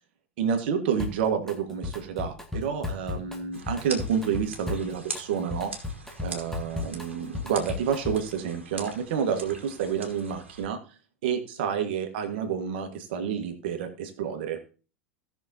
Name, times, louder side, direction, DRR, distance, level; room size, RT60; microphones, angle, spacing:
voice 1, 0.4-5.7 6.2-10.8 11.2-14.7, right 7 dB, 60° right, 7 dB, 1.6 m, -29 dB
Drum kit, 1.0-1.6 1.8-8.4, left 4 dB, 5° left, 1.7 m, -35 dB
sound 1, 3.5-10.6, right 3 dB, 80° right, 1.6 m, -42 dB
16.5 x 6.1 x 2.8 m, 0.36 s
figure-of-eight pair, 80°, 6 cm